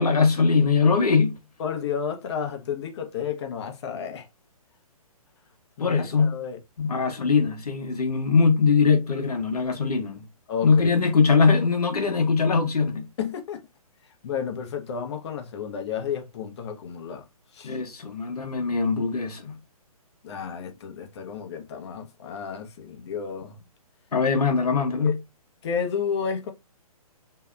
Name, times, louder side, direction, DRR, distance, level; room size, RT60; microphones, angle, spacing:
voice 1, 0.0-1.3 5.8-6.4 6.8-10.3 10.6-13.1 17.6-19.6 24.1-25.2, left 5 dB, 80° left, 0.8 m, -21 dB
voice 2, 1.6-4.3 5.8-6.6 10.5-10.9 13.2-13.6 14.2-17.2 17.5-17.7 20.2-23.6 25.0-25.2 25.6-26.5, left 7 dB, 45° left, 0.7 m, -31 dB
2.7 x 2.1 x 2.3 m
figure-of-eight pair, 135°, 19 cm